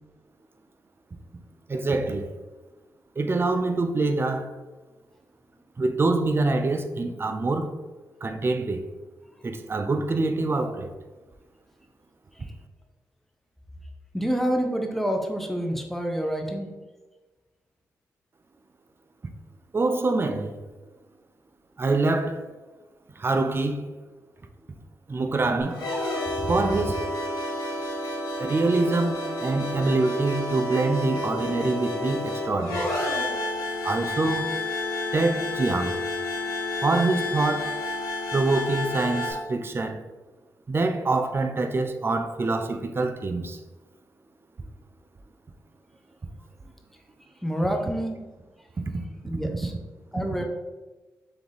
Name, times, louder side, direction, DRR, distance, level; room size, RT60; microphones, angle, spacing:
voice 1, 1.7-2.3 3.2-4.5 5.8-7.7 8.2-8.9 9.4-10.9 19.7-20.5 21.8-22.4 23.2-23.9 25.1-25.9 26.4-27.0 28.4-33.0 33.8-34.6 35.1-36.0 36.8-37.8 38.3-40.0 40.7-43.6, right 3 dB, 35° right, 0.5 m, -25 dB
voice 2, 14.1-16.7 47.4-48.2 49.2-49.7 50.1-50.4, equal, 5° left, 0.8 m, -27 dB
sound 1, 25.7-39.3, left 2 dB, 90° left, 1.2 m, -30 dB
3.4 x 3.4 x 3.9 m
cardioid pair, 55°, 6 cm